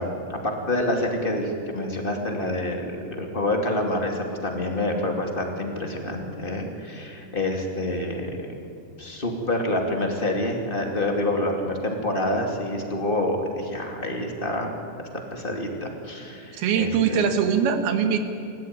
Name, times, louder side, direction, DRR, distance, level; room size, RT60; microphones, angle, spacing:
voice 1, 0.0-8.4 9.0-14.7 15.3-17.3, left 1 dB, 15° left, 2 dB, 1.9 m, -27 dB
voice 2, 16.5-18.2, right 7 dB, 70° right, 7 dB, 3.3 m, -22 dB
27.0 x 15.0 x 9.5 m, 2.4 s
omnidirectional pair, 4.7 m